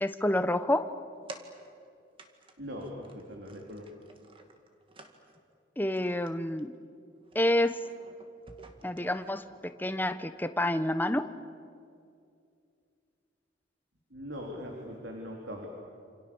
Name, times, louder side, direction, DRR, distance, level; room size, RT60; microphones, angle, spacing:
voice 1, 0.0-0.9 5.8-6.7 7.3-7.7 8.8-11.2, left 1 dB, 10° left, 10 dB, 0.9 m, -28 dB
sound 1, 1.3-1.9 2.2-2.5 2.8-5.4 5.9-6.3 6.6-6.8 7.2-9.7, right 2 dB, 30° right, 2.2 m, -52 dB
voice 2, 2.6-4.1 14.1-15.7, equal, 70° right, 0 dB, 3.9 m, -41 dB
28.5 x 28.0 x 7.2 m, 2.4 s
head